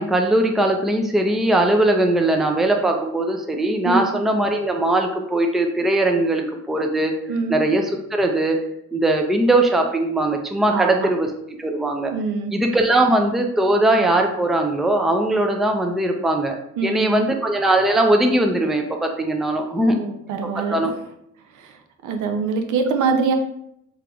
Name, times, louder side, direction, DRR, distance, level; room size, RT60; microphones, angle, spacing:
voice 1, 0.0-7.2 7.5-8.6 8.9-11.3 11.6-12.1 12.5-16.6 16.8-20.0 20.4-20.9, right 1 dB, ahead, 3 dB, 0.4 m, -20 dB
voice 2, 10.7-11.1 12.1-12.5 16.8-17.3 19.8-20.7 21.5-21.8 22.0-23.4, right 4 dB, 75° right, 5 dB, 0.6 m, -24 dB
3.8 x 3.2 x 2.3 m, 0.76 s
cardioid pair, 90°, 30 cm